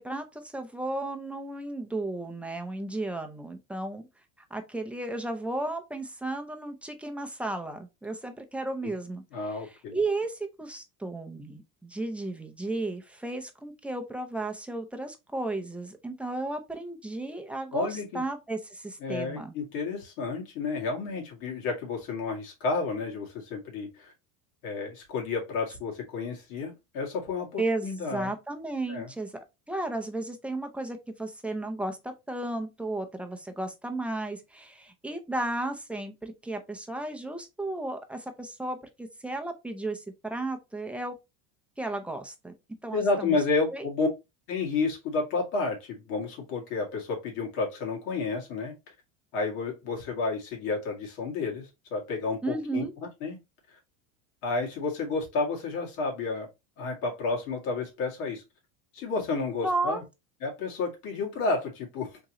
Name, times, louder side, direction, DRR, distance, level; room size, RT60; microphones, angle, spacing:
voice 1, 0.0-4.0 4.5-9.6 9.9-17.9 18.1-19.5 27.6-29.3 29.7-41.2 41.8-42.5 42.8-43.4 43.7-43.9 52.4-52.9 59.6-60.0, right 2 dB, 5° right, 0.4 m, -34 dB
voice 2, 9.3-10.0 17.7-18.2 19.0-24.1 24.6-28.3 28.9-29.1 42.9-44.1 44.5-48.9 49.3-52.9 53.2-53.4 54.4-56.5 56.8-58.4 58.9-60.0 60.4-62.2, left 3 dB, 75° left, 2.1 m, -31 dB
3.7 x 3.0 x 2.8 m
supercardioid pair, 120°, 41 cm